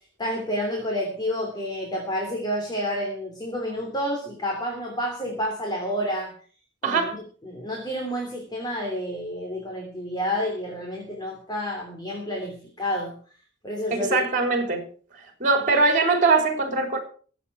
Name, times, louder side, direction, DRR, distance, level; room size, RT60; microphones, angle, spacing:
voice 1, 0.2-6.3 6.8-13.2 13.6-14.3, equal, 20° left, 3.2 m, -29 dB
voice 2, 6.8-7.2 13.9-14.8 15.4-17.0, right 3 dB, 40° right, 3.8 m, -21 dB
22.5 x 8.5 x 4.8 m
head